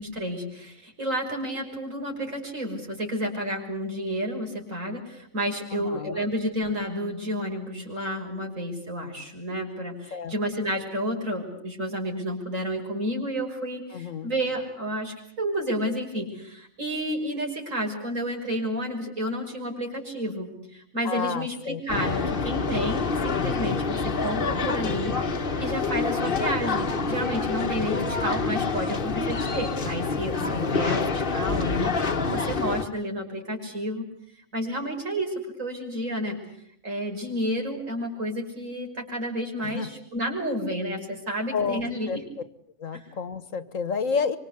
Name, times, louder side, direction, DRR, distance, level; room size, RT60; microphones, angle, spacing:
voice 1, 0.0-31.9 32.3-34.1 34.5-36.4 36.8-42.2 42.9-43.1, equal, 70° right, 2 dB, 6.4 m, -31 dB
voice 2, 5.7-6.3 10.1-10.3 13.9-14.3 21.0-21.8 30.4-31.1 39.6-39.9 41.5-42.2 42.8-44.4, left 5 dB, 70° left, 14 dB, 1.8 m, -30 dB
sound 1, 21.9-32.8, left 4 dB, 40° left, 1.5 m, -27 dB
26.0 x 25.0 x 8.3 m, 0.68 s
omnidirectional pair, 1.4 m